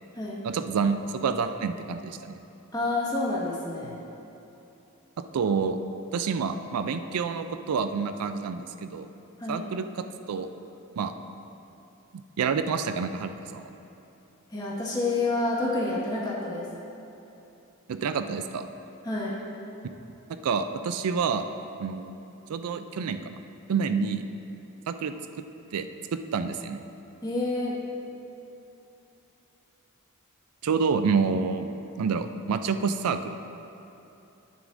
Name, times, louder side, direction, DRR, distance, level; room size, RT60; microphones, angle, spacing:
voice 1, 0.4-2.3 3.8-4.0 5.3-5.8 6.1-9.1 9.5-10.5 11.0-11.1 12.4-13.7 17.9-18.7 20.4-21.5 21.8-22.2 22.5-23.4 23.7-24.2 24.9-25.4 25.7-25.9 26.3-26.8 30.6-31.7 32.0-33.3, right 5 dB, 80° right, 9 dB, 0.4 m, -28 dB
voice 2, 2.7-4.0 9.4-9.6 14.5-16.7 19.0-19.4 27.2-27.8, left 2 dB, 20° left, -6 dB, 1.5 m, -28 dB
10.5 x 9.3 x 2.6 m, 3.0 s
head